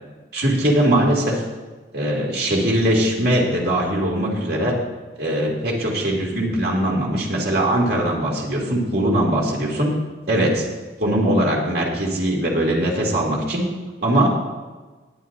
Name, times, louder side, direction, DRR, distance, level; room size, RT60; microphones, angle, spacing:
voice 1, 0.3-1.4 1.9-4.7 5.2-9.9 10.3-10.7 11.0-13.6 14.0-14.3, right 1 dB, 60° right, -2 dB, 2.7 m, -21 dB
19.0 x 8.6 x 2.8 m, 1.3 s
head